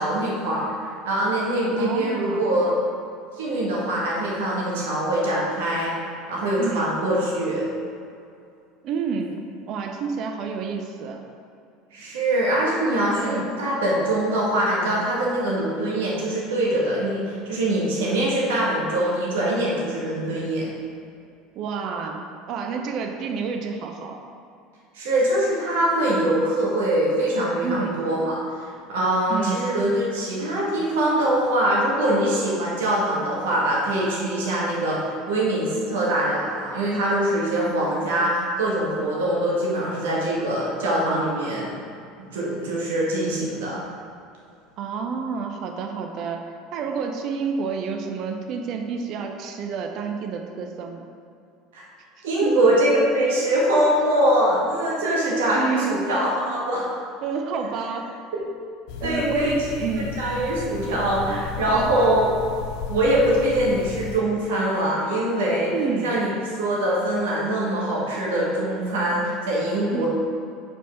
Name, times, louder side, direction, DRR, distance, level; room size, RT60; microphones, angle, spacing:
voice 1, 0.0-2.7 3.4-5.9 6.3-7.6 11.9-20.6 24.9-41.8 42.3-43.8 51.7-51.8 52.2-57.0 59.0-59.9 60.2-62.3 62.9-65.7 66.0-66.3 66.6-70.1, right 1 dB, 70° right, -5 dB, 1.7 m, -23 dB
voice 2, 1.8-2.4 6.6-6.8 8.8-11.2 13.2-13.5 21.5-24.2 27.6-28.0 29.3-29.7 44.8-51.1 52.4-52.6 55.5-56.0 57.2-58.1 59.0-60.2 61.3-61.4 61.7-62.0 65.6-66.2 69.9-70.1, right 5 dB, 50° right, 4 dB, 0.7 m, -29 dB
sound 1, 58.9-64.2, left 7 dB, 60° left, 0.5 m, -34 dB
5.4 x 5.2 x 5.7 m, 2.4 s
figure-of-eight pair, 70°, 0 cm